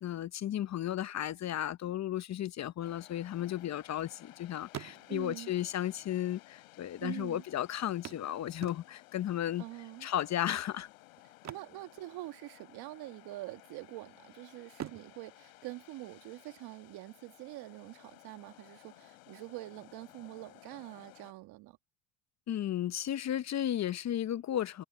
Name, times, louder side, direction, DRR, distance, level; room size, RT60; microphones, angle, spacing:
voice 1, 0.0-9.6 10.0-10.9 22.5-24.8, left 11 dB, 45° left, 0.9 m, -34 dB
sound 1, 2.8-21.3, left 24 dB, 85° left, 7.1 m, -57 dB
sound 2, 3.1-4.3 4.6-5.5 6.4-6.5 6.7-6.8 8.0-9.2 11.3-12.6 12.9-13.1 13.6-14.2 14.7-16.5 18.4-18.5 19.0-19.1, right 10 dB, 45° right, 1.4 m, -47 dB
voice 2, 5.1-5.5 7.0-7.4 9.6-10.1 11.5-21.8, right 19 dB, 70° right, 1.8 m, -45 dB
hypercardioid pair, 75°, 40 cm